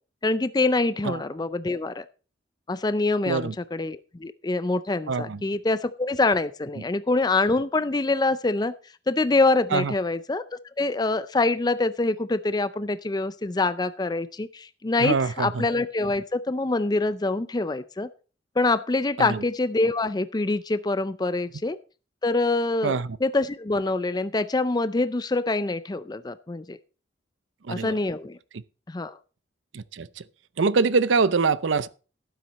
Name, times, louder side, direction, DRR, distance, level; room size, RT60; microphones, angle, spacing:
voice 1, 0.2-2.1 2.7-8.7 9.1-18.1 18.6-21.8 22.2-26.8 27.7-28.4 28.9-29.2, left 2 dB, 20° left, 0.4 m, -25 dB
voice 2, 5.1-5.4 9.7-9.9 15.0-15.6 19.2-19.4 22.8-23.1 27.7-28.0 28.5-28.6 29.7-30.1 30.6-31.9, right 4 dB, 85° right, 0.6 m, -24 dB
12.0 x 9.3 x 4.1 m
head